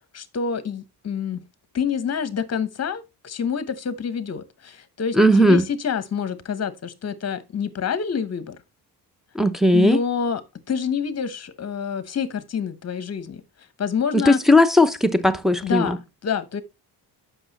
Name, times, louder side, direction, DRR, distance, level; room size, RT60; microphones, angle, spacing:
voice 1, 0.1-1.4 1.7-8.6 9.7-10.4 10.7-13.4 13.8-14.4 15.6-16.6, left 7 dB, 40° left, 1.1 m, -27 dB
voice 2, 5.1-5.6 9.3-10.0 14.1-16.0, left 1 dB, ahead, 0.7 m, -17 dB
7.9 x 6.0 x 4.1 m
cardioid pair, 110°, 40 cm